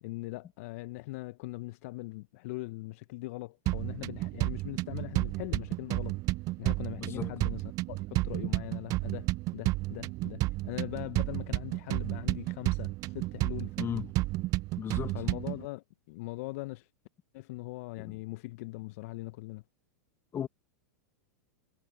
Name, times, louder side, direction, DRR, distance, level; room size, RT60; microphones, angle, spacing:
voice 1, 0.0-6.2 6.6-14.0 15.1-16.9 17.3-19.6, left 21 dB, 55° left, 0.9 m, -41 dB
sound 1, 3.7-15.7, right 20 dB, 35° right, 0.5 m, -32 dB
voice 2, 7.0-7.3 13.8-14.1 14.8-15.2 18.0-18.2 20.3-20.5, left 9 dB, 25° left, 1.5 m, -36 dB
hypercardioid pair, 100°, 9 cm